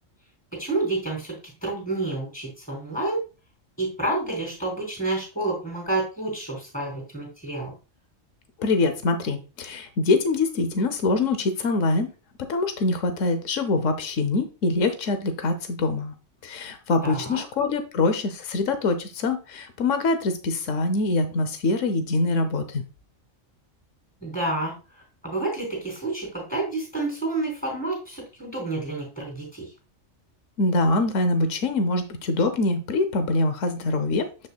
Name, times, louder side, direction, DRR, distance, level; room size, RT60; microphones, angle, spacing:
voice 1, 0.6-1.4 1.6-3.2 3.8-7.7 17.0-17.4 24.2-24.7 25.2-29.6, right 2 dB, 5° left, -2 dB, 3.8 m, -29 dB
voice 2, 8.6-12.1 12.5-16.1 16.4-22.8 30.6-34.5, left 3 dB, 80° left, 9 dB, 1.2 m, -24 dB
7.9 x 6.6 x 2.3 m, 0.31 s
omnidirectional pair, 1.3 m